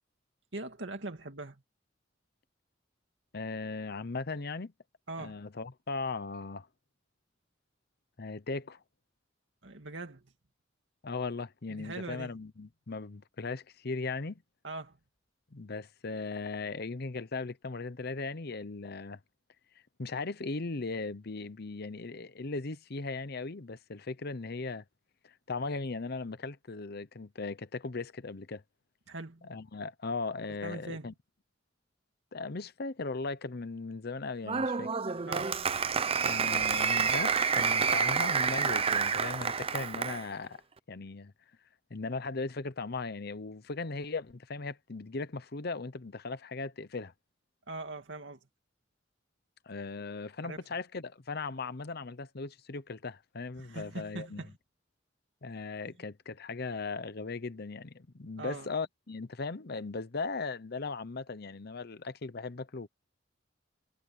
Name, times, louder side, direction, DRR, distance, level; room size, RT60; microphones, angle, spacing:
voice 1, 0.5-1.6 5.1-5.4 9.6-10.2 11.7-12.3 14.6-15.0 29.1-29.4 30.6-31.1 35.3-35.5 47.7-48.4 50.4-50.6 53.6-54.5 58.4-58.7, right 2 dB, 70° right, 2.4 m, -41 dB
voice 2, 3.3-4.7 5.2-6.7 8.2-8.8 11.0-14.4 15.5-19.2 20.0-24.8 25.2-28.6 29.4-31.1 32.3-34.9 36.2-40.6 40.9-41.3 41.9-47.1 49.7-54.4 55.4-62.9, left 3 dB, 55° left, 0.9 m, -38 dB
Applause, 34.5-40.3, right 6 dB, 30° right, 0.6 m, -29 dB
head